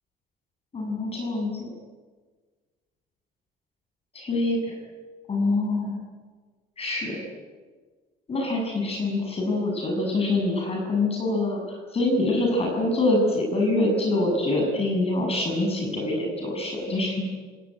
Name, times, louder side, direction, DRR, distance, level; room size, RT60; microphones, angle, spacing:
voice 1, 0.7-1.7 4.1-4.7 5.3-6.0 6.8-7.2 8.3-17.3, left 2 dB, 35° left, 1 dB, 7.8 m, -25 dB
26.0 x 19.0 x 9.0 m, 1.4 s
cardioid pair, 110°, 17 cm